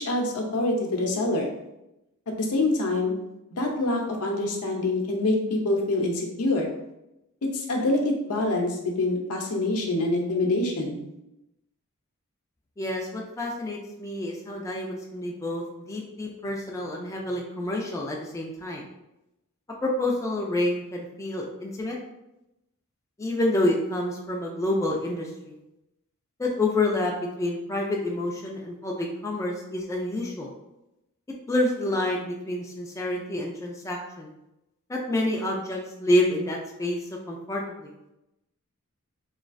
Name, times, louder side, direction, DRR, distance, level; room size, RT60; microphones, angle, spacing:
voice 1, 0.0-1.5 2.4-3.1 3.6-6.7 7.5-11.0, left 2 dB, 80° left, 1 dB, 0.6 m, -25 dB
voice 2, 12.8-18.8 19.8-22.0 23.2-25.6 26.4-30.5 31.5-34.3 34.9-37.0 37.3-37.9, left 1 dB, 15° left, -1 dB, 0.3 m, -28 dB
3.1 x 2.3 x 2.5 m, 0.89 s
head